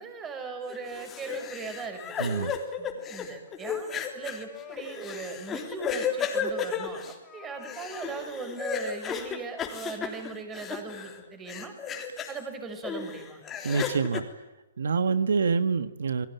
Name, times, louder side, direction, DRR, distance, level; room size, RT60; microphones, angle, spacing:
voice 1, 0.0-11.7 12.3-13.4, right 4 dB, 15° right, 7 dB, 5.6 m, -39 dB
sound 1, 0.7-11.2 11.5-12.4 12.8-14.2, left 7 dB, 15° left, 3.4 m, -34 dB
voice 2, 2.2-2.5 13.6-14.2 14.8-16.3, right 5 dB, 80° right, 12 dB, 1.5 m, -26 dB
29.5 x 21.0 x 9.3 m, 1.0 s
hypercardioid pair, 155°, 0 cm